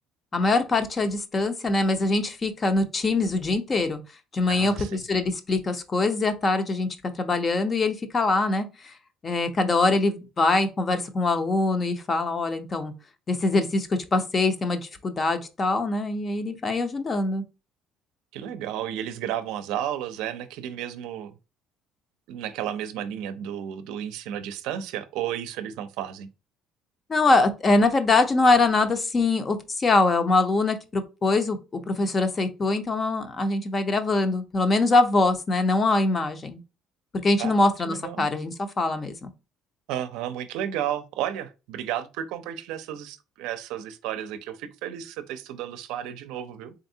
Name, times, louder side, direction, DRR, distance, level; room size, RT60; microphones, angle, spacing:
voice 1, 0.3-4.0 4.3-6.9 7.2-8.9 9.2-12.9 13.3-17.4 27.1-36.6 37.2-39.3, left 3 dB, 30° left, 0.6 m, -23 dB
voice 2, 4.5-5.0 18.3-21.3 22.3-26.3 37.4-37.5 37.8-38.3 39.9-46.7, right 10 dB, 80° right, 0.4 m, -33 dB
3.8 x 3.4 x 2.7 m
cardioid pair, 115°, 0 cm